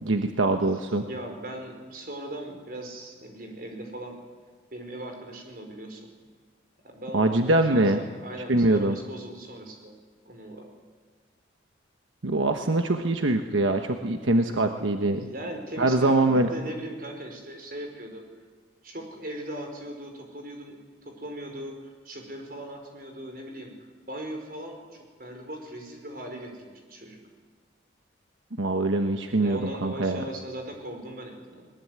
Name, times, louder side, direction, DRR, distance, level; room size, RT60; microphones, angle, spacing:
voice 1, 0.0-1.0 7.1-8.0 8.5-9.0 12.2-15.3 15.8-16.5 28.6-30.2, right 2 dB, 85° right, 5 dB, 1.2 m, -23 dB
voice 2, 0.6-4.1 4.7-6.1 6.8-10.0 10.2-10.7 14.6-18.2 18.8-23.7 24.1-27.2 29.4-31.7, right 1 dB, 50° right, 3 dB, 5.0 m, -39 dB
20.5 x 20.0 x 9.6 m, 1.5 s
head